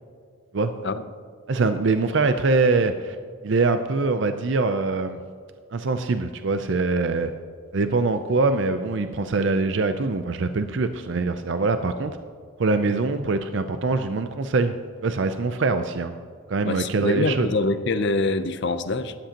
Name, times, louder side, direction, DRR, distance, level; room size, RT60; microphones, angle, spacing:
voice 1, 1.5-3.2 3.4-5.2 5.7-7.3 7.7-12.2 12.6-14.8 15.0-16.1 16.5-17.5, right 3 dB, 60° right, 9 dB, 0.5 m, -23 dB
voice 2, 16.6-19.2, left 3 dB, 55° left, 11 dB, 0.6 m, -25 dB
13.0 x 11.5 x 2.9 m, 2.1 s
head